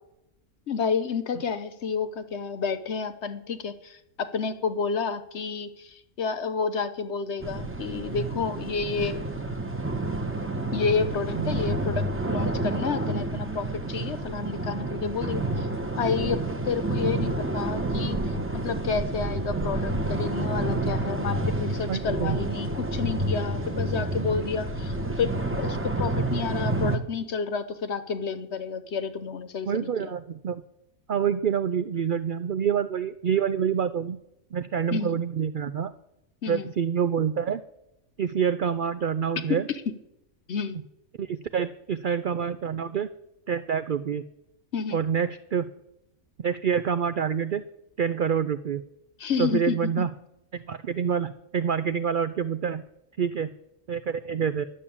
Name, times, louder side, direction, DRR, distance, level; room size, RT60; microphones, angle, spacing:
voice 1, 0.7-9.2 10.7-15.7 16.0-16.4 16.6-18.2 18.5-30.1 34.9-35.2 36.4-36.7 39.5-39.6 39.9-40.0 40.5-40.8 44.7-45.0 49.2-50.0, left 5 dB, 55° left, 11 dB, 1.1 m, -30 dB
sound 1, 7.4-27.0, right 2 dB, 10° right, 0.9 m, -29 dB
voice 2, 21.9-22.4 29.7-30.6 31.1-34.2 34.5-35.9 36.5-37.6 38.2-39.6 41.2-43.1 43.5-44.2 44.9-45.7 46.4-47.7 48.0-48.8 49.4-50.1 50.5-52.8 53.2-53.5 53.9-54.6, right 7 dB, 80° right, 12 dB, 0.4 m, -27 dB
11.0 x 7.2 x 8.6 m, 0.88 s
omnidirectional pair, 1.5 m